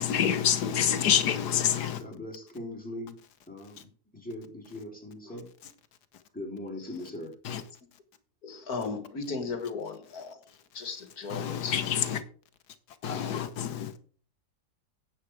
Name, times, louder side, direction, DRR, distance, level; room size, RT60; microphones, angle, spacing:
voice 1, 0.0-2.0 7.4-7.6 11.3-12.2 13.0-13.9, left 9 dB, 85° left, 1.5 m, -27 dB
voice 2, 2.0-3.2 3.5-5.5 6.3-7.3, left 1 dB, 5° left, 3.6 m, -40 dB
voice 3, 8.4-11.8 13.1-13.4, left 4 dB, 70° left, 2.0 m, -37 dB
9.9 x 8.2 x 4.7 m
omnidirectional pair, 1.7 m